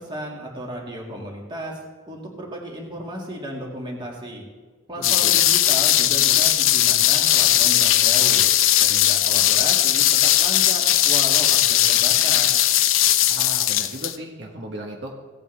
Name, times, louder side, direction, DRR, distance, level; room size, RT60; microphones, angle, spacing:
voice 1, 0.0-1.8 2.1-4.4 4.9-8.4 8.8-12.6, right 1 dB, 25° right, -1 dB, 2.0 m, -34 dB
sound 1, 5.0-14.2, left 12 dB, 75° left, 0.6 m, -18 dB
voice 2, 5.0-5.4 13.3-15.1, right 1 dB, 60° right, 1 dB, 1.2 m, -36 dB
16.5 x 9.0 x 3.3 m, 1.4 s
head